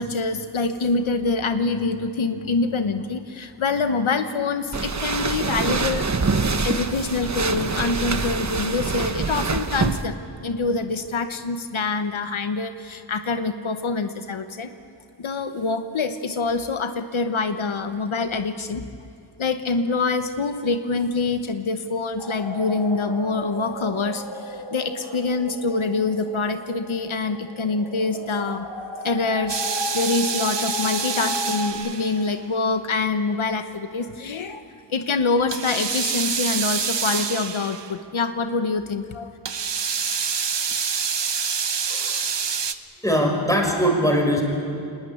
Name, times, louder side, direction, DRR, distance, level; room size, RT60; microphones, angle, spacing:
voice 1, 0.0-6.1 6.6-10.2 10.4-14.7 15.2-18.9 19.4-28.7 29.0-34.6 34.9-39.3, left 3 dB, 85° left, 8 dB, 1.0 m, -25 dB
sound 1, 4.7-10.0, right 4 dB, 35° right, 1.0 m, -25 dB
sound 2, 22.2-31.7, left 1 dB, 65° left, 5.5 m, -34 dB
sound 3, 29.5-32.3 35.5-37.9 39.4-42.7, right 6 dB, 60° right, 1.0 m, -27 dB
voice 2, 41.9-42.2 43.0-44.4, equal, 5° left, 2 dB, 5.1 m, -21 dB
23.5 x 19.0 x 9.9 m, 2.6 s
wide cardioid pair, 70°, 47 cm